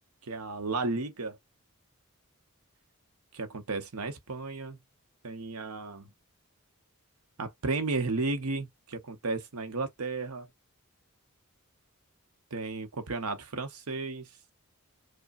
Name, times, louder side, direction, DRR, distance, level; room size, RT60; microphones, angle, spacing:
voice 1, 0.2-1.4 3.3-4.8 5.2-6.1 7.4-10.5 12.5-14.3, right 3 dB, 80° right, 0.9 m, -33 dB
5.1 x 2.2 x 2.5 m
head